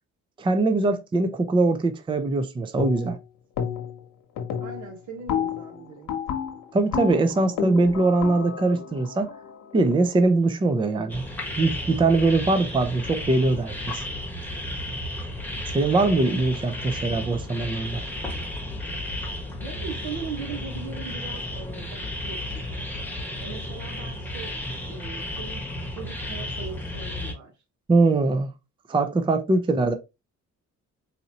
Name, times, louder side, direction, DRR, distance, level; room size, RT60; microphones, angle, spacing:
voice 1, 0.4-3.2 6.7-9.3 9.7-11.2 11.5-14.0 15.7-18.0 27.9-28.5 28.9-29.9, right 3 dB, 15° right, 0.5 m, -22 dB
sound 1, 2.8-3.2 3.6-4.0 4.4-10.2, left 8 dB, 85° left, 1.0 m, -31 dB
voice 2, 4.6-6.1 19.6-22.6 23.4-24.6 24.9-25.7 25.9-27.5, right 6 dB, 70° right, 1.4 m, -39 dB
sound 2, 11.1-27.3, left 1 dB, 5° left, 1.2 m, -33 dB
4.0 x 2.7 x 2.9 m
cardioid pair, 90°, 30 cm